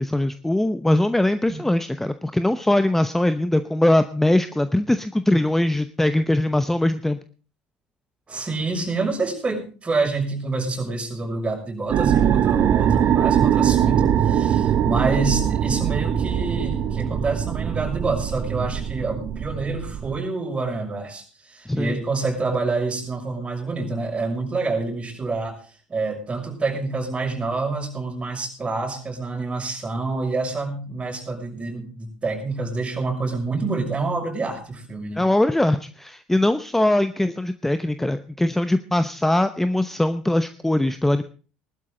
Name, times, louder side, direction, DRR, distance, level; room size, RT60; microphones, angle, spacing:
voice 1, 0.0-7.2 21.7-22.0 35.2-41.2, left 1 dB, 5° left, 11 dB, 0.9 m, -21 dB
voice 2, 8.3-25.6 25.9-35.2, right 3 dB, 25° right, 2 dB, 6.3 m, -27 dB
sound 1, 11.9-20.2, right 9 dB, 45° right, 1.1 m, -21 dB
19.5 x 12.5 x 3.9 m, 0.39 s
hypercardioid pair, 65°, 5 cm